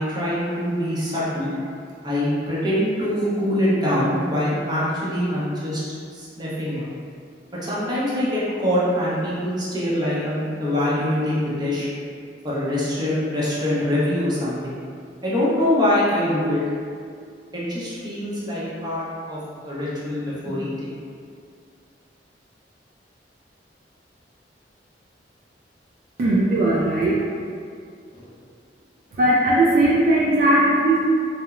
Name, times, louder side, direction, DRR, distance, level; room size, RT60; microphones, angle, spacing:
voice 1, 0.0-1.7 2.0-5.8 6.1-6.8 7.6-11.9 12.4-14.7 15.2-16.6 17.5-21.0 28.2-28.3, left 1 dB, 25° right, -8 dB, 0.6 m, -24 dB
voice 2, 26.2-27.3 29.1-31.0, right 1 dB, 55° right, -6 dB, 0.3 m, -18 dB
2.9 x 2.0 x 2.3 m, 2.2 s
head